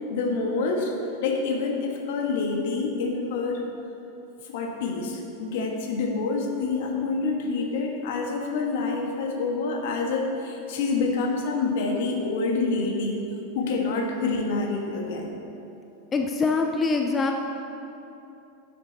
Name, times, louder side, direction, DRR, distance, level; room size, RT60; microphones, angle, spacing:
voice 1, 0.1-0.9 1.2-3.6 4.4-13.2 13.5-15.4, left 3 dB, 65° left, 2 dB, 1.3 m, -27 dB
voice 2, 16.1-17.4, left 4 dB, 25° left, 3 dB, 0.6 m, -24 dB
10.0 x 7.6 x 4.0 m, 2.9 s
hypercardioid pair, 100°, 0 cm